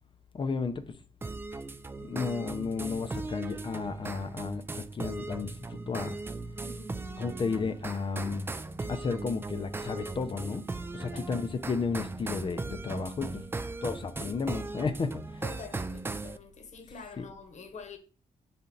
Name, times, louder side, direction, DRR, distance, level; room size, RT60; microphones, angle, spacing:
voice 1, 0.3-1.0 1.6-6.2 7.2-8.5 8.9-13.5 13.8-15.4 17.2-17.3, left 5 dB, 35° left, 0.5 m, -33 dB
sound 1, 1.2-16.4, right 3 dB, 15° right, 0.3 m, -38 dB
voice 2, 6.6-7.1 10.9-11.3 15.4-18.0, left 4 dB, 55° left, 1.1 m, -46 dB
7.1 x 4.3 x 3.9 m
wide cardioid pair, 145°, 14 cm